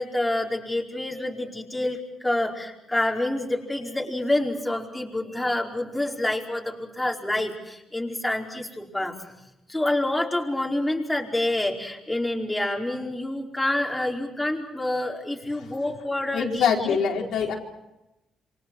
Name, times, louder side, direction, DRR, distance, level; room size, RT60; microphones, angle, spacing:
voice 1, 0.0-9.1 9.7-17.0, left 1 dB, 10° left, 0 dB, 4.9 m, -27 dB
voice 2, 16.3-17.5, left 7 dB, 75° left, 0 dB, 4.7 m, -24 dB
28.5 x 24.0 x 6.4 m, 0.93 s
cardioid pair, 90°, 0 cm